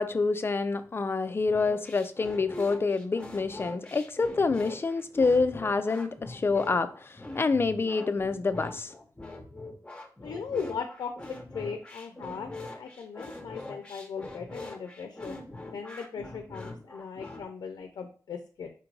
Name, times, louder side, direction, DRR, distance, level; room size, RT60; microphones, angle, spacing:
voice 1, 0.0-8.9, left 4 dB, 35° left, 0.4 m, -27 dB
sound 1, 1.5-17.4, left 2 dB, 15° left, 0.9 m, -43 dB
voice 2, 10.2-18.7, left 6 dB, 85° left, 0.6 m, -38 dB
4.5 x 2.5 x 4.6 m
wide cardioid pair, 95°, 7 cm